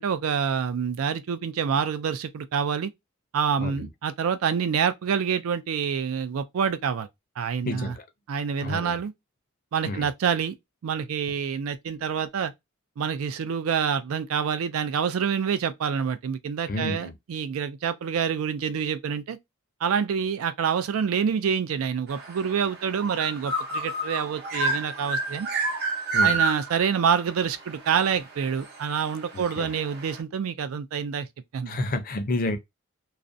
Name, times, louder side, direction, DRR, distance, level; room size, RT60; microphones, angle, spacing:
voice 1, 0.0-2.9 3.3-7.1 7.4-8.0 8.3-9.1 9.7-10.5 10.8-12.5 13.0-19.4 19.8-25.5 26.2-31.3 31.5-31.9, right 7 dB, 85° right, 0.4 m, -27 dB
voice 2, 7.6-8.0 8.6-9.0 9.9-10.1 16.7-17.1 26.1-26.4 29.3-29.7 31.7-32.6, left 2 dB, 45° left, 0.5 m, -30 dB
sound 1, 22.1-30.2, right 3 dB, 50° right, 0.6 m, -30 dB
2.4 x 2.0 x 2.5 m
head